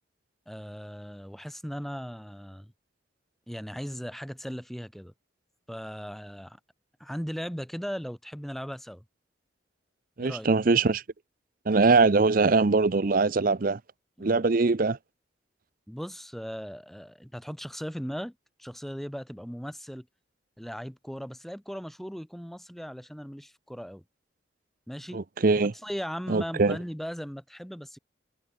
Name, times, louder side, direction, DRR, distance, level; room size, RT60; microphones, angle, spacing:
voice 1, 0.5-2.7 3.5-5.1 5.7-6.6 7.0-9.0 10.2-10.5 14.2-14.5 15.9-20.1 20.6-24.0 24.9-25.2 25.8-28.0, equal, ahead, 4.5 m, -38 dB
voice 2, 10.2-11.0 11.7-13.8 14.2-15.0 25.1-25.7 26.3-26.8, right 3 dB, 50° right, 0.6 m, -22 dB
head